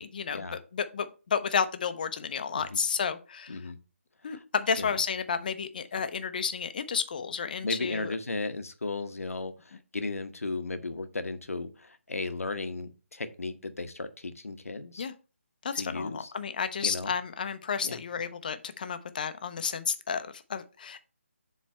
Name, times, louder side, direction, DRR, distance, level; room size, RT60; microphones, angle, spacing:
voice 1, 0.0-0.5 0.7-3.5 4.2-8.1 15.0-15.1 15.6-21.0, left 6 dB, 40° left, 11 dB, 0.6 m, -31 dB
voice 2, 7.6-15.1 15.7-16.3 16.8-17.1 17.8-18.0, left 3 dB, 90° left, 9 dB, 1.0 m, -35 dB
7.5 x 3.3 x 4.3 m, 0.34 s
figure-of-eight pair, 165°, 7 cm